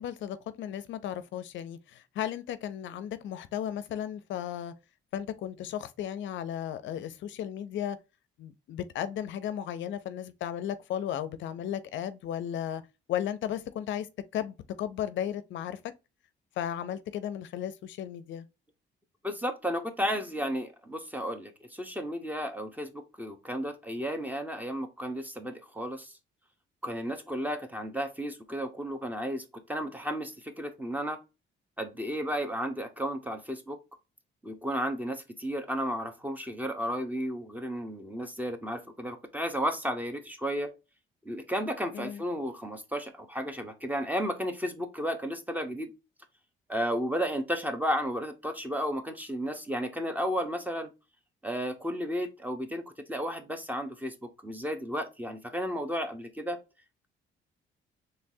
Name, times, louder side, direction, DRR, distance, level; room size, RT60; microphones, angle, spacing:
voice 1, 0.0-4.7 5.1-8.0 8.4-12.8 13.1-14.1 14.3-15.8 16.6-18.5 41.9-42.2, left 10 dB, 70° left, 0.5 m, -35 dB
voice 2, 19.2-26.1 26.8-31.2 31.8-33.8 34.4-40.7 41.2-45.9 46.7-50.9 51.4-52.8 53.1-56.6, equal, 10° right, 0.9 m, -33 dB
4.4 x 3.2 x 2.6 m
cardioid pair, 90°, 20 cm